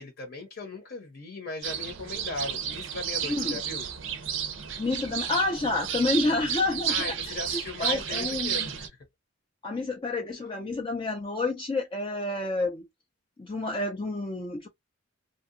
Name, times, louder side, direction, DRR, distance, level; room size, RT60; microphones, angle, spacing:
voice 1, 0.0-3.9 6.9-8.9, left 3 dB, 55° left, 0.8 m, -38 dB
sound 1, 1.6-8.9, right 8 dB, 65° right, 0.5 m, -32 dB
voice 2, 3.2-3.6 4.8-8.7 9.6-12.9 13.4-14.7, left 2 dB, 25° left, 0.4 m, -29 dB
2.8 x 2.2 x 2.5 m
head